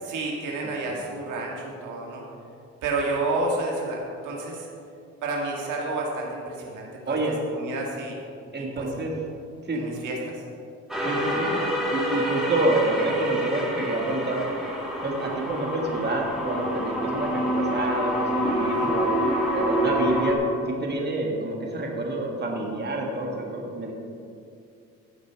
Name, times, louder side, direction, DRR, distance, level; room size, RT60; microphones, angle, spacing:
voice 1, 0.0-2.2 2.8-4.7 5.2-7.2 7.5-8.2 8.6-8.9 9.7-10.4 18.6-18.9, right 2 dB, 80° right, -2 dB, 1.9 m, -30 dB
voice 2, 0.6-1.0 7.1-7.4 8.5-9.1 9.7-9.8 11.0-11.5 11.9-14.4 15.0-19.1 19.5-23.9, right 2 dB, 35° right, 0 dB, 1.7 m, -28 dB
sound 1, 10.9-20.3, equal, ahead, 2.2 m, -27 dB
15.5 x 5.2 x 4.6 m, 2.4 s
cardioid pair, 90°, 30 cm